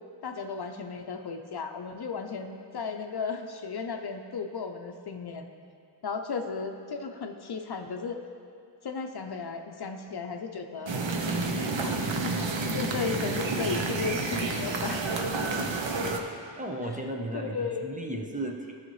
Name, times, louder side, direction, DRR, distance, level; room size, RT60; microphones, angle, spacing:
voice 1, 0.2-5.5 6.0-8.2 8.8-10.9 11.8-12.0 12.7-15.1 15.4-15.7 16.9-17.0 17.3-17.9, left 5 dB, 60° left, 5 dB, 0.6 m, -35 dB
sound 1, 10.9-16.2, right 3 dB, 80° right, 0.8 m, -30 dB
voice 2, 16.6-18.7, right 1 dB, 15° right, 1 dB, 0.7 m, -35 dB
14.0 x 5.7 x 3.1 m, 2.4 s
wide cardioid pair, 80°, 44 cm